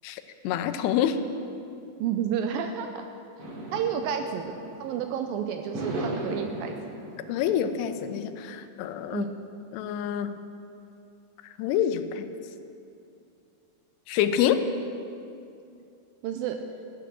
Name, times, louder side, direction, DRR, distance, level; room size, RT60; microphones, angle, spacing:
voice 1, 0.0-1.2 7.3-9.3 9.7-10.3 11.6-12.2 14.1-14.6, left 10 dB, 85° left, 9 dB, 2.8 m, -27 dB
voice 2, 2.0-3.1 3.7-4.5 4.8-6.8 9.1-9.3 16.2-16.6, right 8 dB, 90° right, 6 dB, 2.1 m, -30 dB
sound 1, 3.4-5.1 5.7-8.0, right 2 dB, 40° right, 2.8 m, -36 dB
14.0 x 10.0 x 6.5 m, 2.6 s
omnidirectional pair, 4.7 m